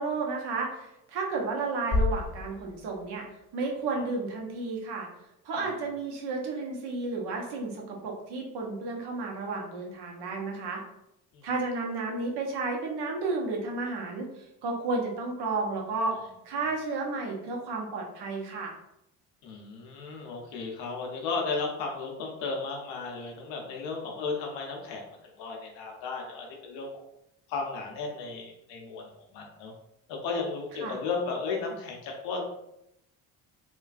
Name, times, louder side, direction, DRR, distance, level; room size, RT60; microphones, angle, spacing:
voice 1, 0.0-3.2 3.5-5.1 5.4-10.8 11.4-16.1 16.4-18.7 30.8-31.0, right 3 dB, 60° right, 0 dB, 0.9 m, -32 dB
sound 1, 1.9-4.0, left 3 dB, 20° left, 0.4 m, -31 dB
voice 2, 19.4-25.0 25.4-26.9 27.5-29.7 30.2-32.4, left 4 dB, 80° left, 1 dB, 0.8 m, -34 dB
3.2 x 2.2 x 2.4 m, 0.82 s
supercardioid pair, 65°, 44 cm